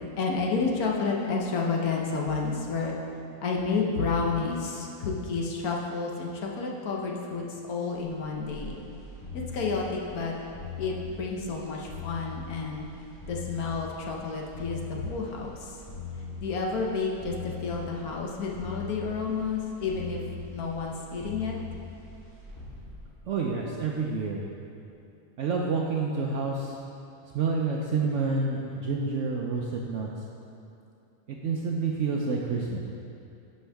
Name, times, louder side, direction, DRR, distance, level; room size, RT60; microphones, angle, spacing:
voice 1, 0.2-2.9 3.4-8.8 9.3-10.3 10.8-12.9 13.3-15.5 16.4-17.3 17.6-20.2 20.5-21.6, left 4 dB, 65° left, -1 dB, 1.3 m, -30 dB
sound 1, 7.9-24.0 24.4-24.5, left 4 dB, 10° left, 1.5 m, -42 dB
voice 2, 23.2-24.4 25.4-26.8 27.3-30.1 31.3-32.8, right 4 dB, 65° right, -1 dB, 0.7 m, -28 dB
11.0 x 5.4 x 3.4 m, 2.7 s
omnidirectional pair, 1.7 m